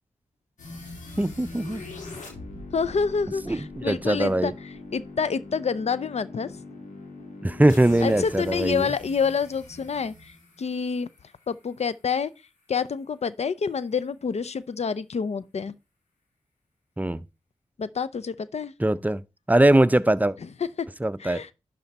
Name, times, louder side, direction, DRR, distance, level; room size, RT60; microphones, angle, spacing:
sound 1, 0.6-11.5, left 2 dB, 80° left, 3.0 m, -42 dB
voice 1, 1.2-1.8 3.5-4.5 7.4-8.9 17.0-17.2 18.8-19.2 19.5-20.3 21.0-21.4, right 1 dB, 15° right, 0.6 m, -21 dB
voice 2, 2.7-4.5 4.9-6.6 8.0-11.1 11.5-12.3 12.7-15.8 17.8-18.7 21.2-21.5, left 5 dB, 60° left, 0.6 m, -28 dB
11.5 x 4.4 x 4.1 m
cardioid pair, 40°, 13 cm